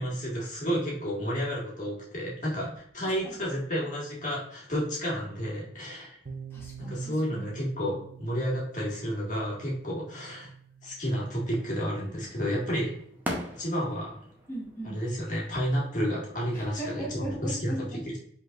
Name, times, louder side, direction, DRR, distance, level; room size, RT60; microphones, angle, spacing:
voice 1, 0.0-6.2 6.9-10.5 10.8-12.9 13.6-14.2 14.8-17.7, equal, 45° left, -5 dB, 1.8 m, -31 dB
voice 2, 3.0-3.4 6.5-7.5 14.5-15.0 16.5-18.2, right 1 dB, 15° left, -5 dB, 1.1 m, -39 dB
sound 1, 6.2-13.9, right 7 dB, 50° right, 0.6 m, -48 dB
sound 2, 11.4-17.0, equal, 10° right, 0.7 m, -42 dB
5.4 x 3.9 x 2.4 m, 0.65 s
head